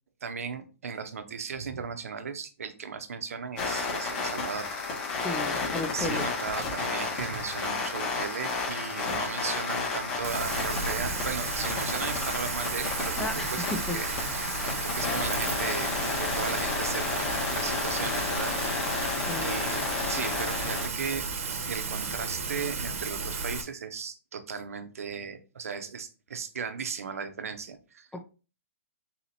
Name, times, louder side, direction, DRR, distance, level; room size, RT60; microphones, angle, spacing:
voice 1, 0.2-4.7 5.9-13.6 13.9-18.5 19.4-21.3 21.7-28.1, right 6 dB, 90° right, 8 dB, 0.8 m, -36 dB
sound 1, 3.6-20.9, left 4 dB, 35° left, 1.6 m, -32 dB
voice 2, 5.2-6.3 13.2-13.5 13.9-14.0 14.7-14.8 19.3-19.6 28.1-28.2, left 2 dB, 5° left, 6 dB, 0.4 m, -34 dB
Rain, 10.2-23.6, right 4 dB, 75° right, 1.1 m, -33 dB
4.2 x 2.8 x 4.1 m, 0.34 s
hypercardioid pair, 150°, 8 cm